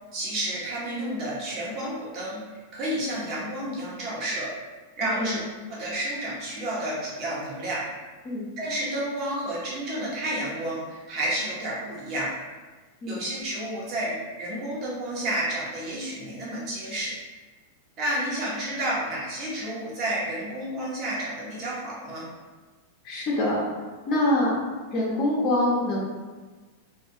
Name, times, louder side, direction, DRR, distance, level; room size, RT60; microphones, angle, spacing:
voice 1, 0.1-2.4 2.7-4.5 5.0-5.4 5.7-7.8 8.6-12.3 13.0-17.1 18.0-22.2, right 1 dB, 45° right, -6 dB, 1.0 m, -30 dB
voice 2, 23.0-23.7 24.1-24.5 24.9-26.0, left 1 dB, 40° left, -4 dB, 0.6 m, -24 dB
2.4 x 2.2 x 2.8 m, 1.3 s
hypercardioid pair, 110°, 0 cm